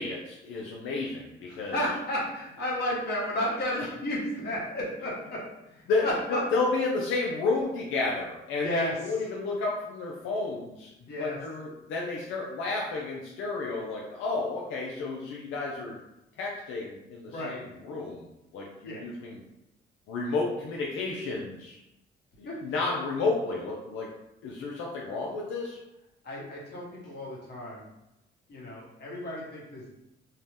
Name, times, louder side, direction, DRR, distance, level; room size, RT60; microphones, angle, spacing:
voice 1, 0.0-1.8 5.9-10.9 11.2-16.0 16.4-17.6 17.8-18.3 18.5-19.4 20.1-21.8 22.4-24.1 24.4-25.8, left 3 dB, 90° left, -2 dB, 0.4 m, -31 dB
voice 2, 1.5-6.4 8.6-8.9 11.0-11.4 17.3-17.6 18.8-19.0 22.4-22.6 26.2-27.8 28.5-29.9, left 1 dB, 55° left, -4 dB, 1.2 m, -33 dB
2.7 x 2.1 x 3.2 m, 0.90 s
cardioid pair, 90°, 20 cm